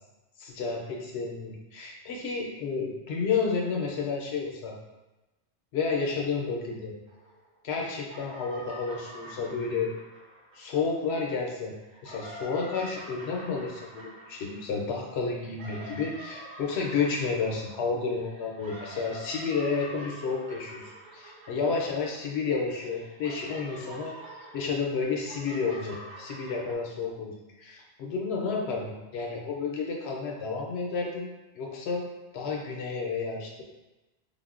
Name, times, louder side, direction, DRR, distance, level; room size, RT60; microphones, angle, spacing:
voice 1, 0.4-4.7 5.7-6.9 7.6-9.9 10.6-11.7 12.0-20.8 21.1-24.1 24.5-31.3 31.6-32.1 32.3-33.6, left 4 dB, 90° left, -1 dB, 0.9 m, -31 dB
sound 1, 7.1-7.7 8.0-11.3 11.8-22.4 22.7-26.7, right 1 dB, 90° right, 1.1 m, -46 dB
3.8 x 2.1 x 2.4 m, 1.1 s
omnidirectional pair, 1.1 m